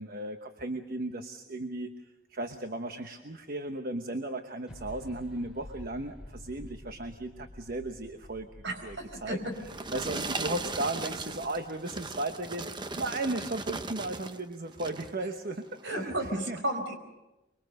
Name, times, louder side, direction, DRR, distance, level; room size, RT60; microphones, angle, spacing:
voice 1, 0.0-9.4 9.9-12.7 13.0-16.6, right 2 dB, 45° right, 7 dB, 1.1 m, -36 dB
sound 1, 4.7-12.2, left 1 dB, 5° right, 4.7 m, -50 dB
voice 2, 8.6-9.4 15.8-17.0, right 1 dB, 65° right, 6 dB, 4.9 m, -33 dB
sound 2, 9.3-14.4 14.7-15.2 15.7-15.9, right 3 dB, 25° right, 0.8 m, -37 dB
25.0 x 23.5 x 6.6 m, 1.0 s
head